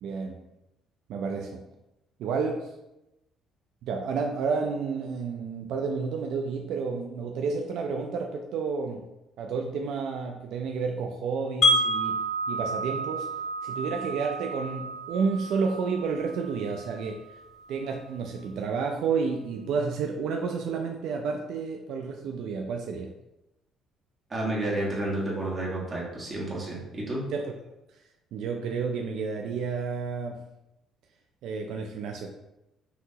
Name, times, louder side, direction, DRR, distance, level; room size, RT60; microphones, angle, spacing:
voice 1, 0.0-0.4 1.1-1.6 2.2-2.7 3.8-9.0 9.4-12.2 12.5-17.2 17.7-23.1 27.3-27.5 28.3-30.4 31.4-32.3, right 5 dB, 70° right, 2 dB, 0.4 m, -30 dB
Wind chime, 11.6-17.6, equal, 45° left, 0.9 m, -29 dB
voice 2, 24.3-27.2, right 1 dB, 25° right, -5 dB, 1.5 m, -30 dB
5.8 x 2.9 x 2.8 m, 0.93 s
cardioid pair, 135°, 0 cm